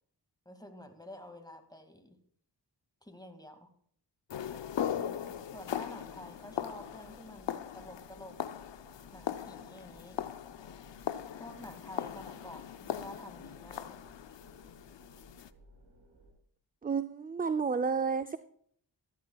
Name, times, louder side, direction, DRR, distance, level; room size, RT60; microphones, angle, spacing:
voice 1, 0.5-2.2 3.0-3.7 5.0-8.4 9.1-10.2 11.4-14.0, left 1 dB, 10° left, 6 dB, 2.0 m, -49 dB
sound 1, 4.3-15.5, left 10 dB, 75° left, 0.7 m, -39 dB
sound 2, 4.3-16.3, right 1 dB, 70° right, 5.0 m, -60 dB
voice 2, 16.8-18.4, right 5 dB, 20° right, 11 dB, 0.4 m, -31 dB
14.0 x 13.5 x 2.3 m, 0.62 s
cardioid pair, 55°, 44 cm